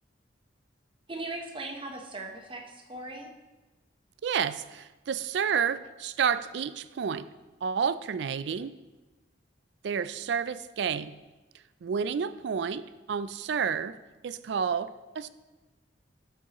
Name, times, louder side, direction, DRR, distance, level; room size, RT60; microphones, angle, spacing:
voice 1, 1.1-3.3, right 2 dB, 25° right, 2 dB, 0.9 m, -39 dB
voice 2, 4.2-7.3 7.6-8.8 9.8-11.2 11.8-14.0 14.2-15.3, right 7 dB, 60° right, 15 dB, 0.3 m, -30 dB
11.5 x 7.0 x 3.0 m, 1.2 s
head